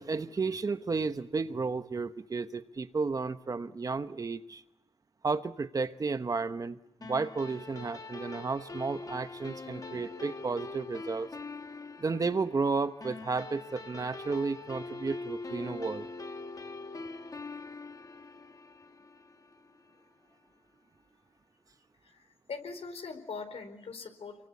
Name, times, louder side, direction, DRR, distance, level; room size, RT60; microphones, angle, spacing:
voice 1, 0.0-4.6 5.2-11.3 12.0-16.1, right 4 dB, 30° right, 11 dB, 1.1 m, -33 dB
sound 1, 7.0-19.8, left 3 dB, 35° left, 1.4 m, -43 dB
voice 2, 22.0-24.5, left 4 dB, 65° left, 8 dB, 4.2 m, -42 dB
29.0 x 23.0 x 8.5 m, 0.80 s
wide cardioid pair, 175°, 11 cm